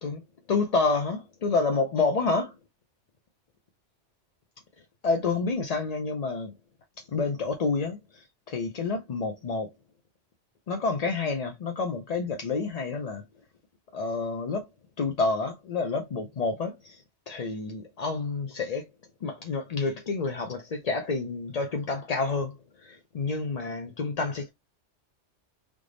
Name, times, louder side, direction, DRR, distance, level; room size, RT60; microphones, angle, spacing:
voice 1, 0.5-2.5 5.0-6.5 7.0-9.7 10.7-13.2 13.9-14.7 15.0-18.8 19.2-24.5, left 4 dB, 45° left, 0.5 m, -29 dB
3.4 x 3.3 x 3.8 m
omnidirectional pair, 1.2 m